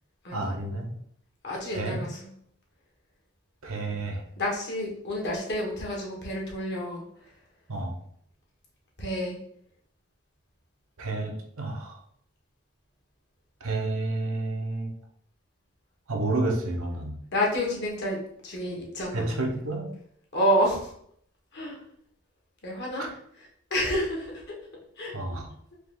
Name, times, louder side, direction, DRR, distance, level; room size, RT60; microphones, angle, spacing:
voice 1, 0.3-0.9 1.7-2.0 3.6-4.2 7.7-7.9 11.0-12.0 13.6-14.9 16.1-17.1 19.1-19.9 23.0-23.1 25.1-25.5, right 2 dB, 85° right, 2 dB, 0.9 m, -30 dB
voice 2, 1.4-2.3 4.4-7.0 9.0-9.4 17.3-18.2 18.4-19.3 20.3-20.9 21.5-21.8 22.6-23.0 23.7-24.4 25.0-25.1, equal, 55° left, -1 dB, 1.3 m, -29 dB
4.7 x 2.5 x 3.5 m, 0.66 s
head